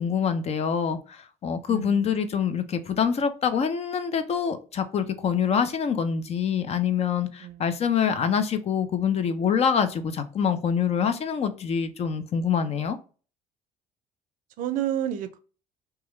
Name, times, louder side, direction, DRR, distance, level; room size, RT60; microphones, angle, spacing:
voice 1, 0.0-13.0, left 7 dB, 45° left, 0.5 m, -25 dB
voice 2, 1.7-2.2 7.4-7.7 14.6-15.4, right 11 dB, 65° right, 0.5 m, -30 dB
2.9 x 2.3 x 3.0 m
supercardioid pair, 70°, 15 cm